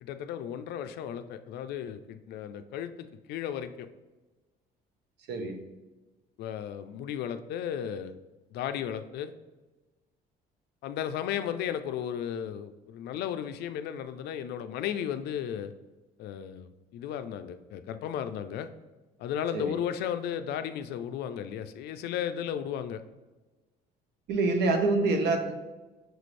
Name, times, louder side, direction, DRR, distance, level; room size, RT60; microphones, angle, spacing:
voice 1, 0.0-3.9 6.4-8.2 8.5-9.3 10.8-15.7 16.2-18.7 19.2-23.0, left 9 dB, 75° left, 10 dB, 0.4 m, -34 dB
voice 2, 5.3-5.6 19.5-19.8 24.3-25.5, right 3 dB, 80° right, 5 dB, 0.7 m, -26 dB
6.1 x 2.5 x 3.2 m, 1.2 s
cardioid pair, 110°, 17 cm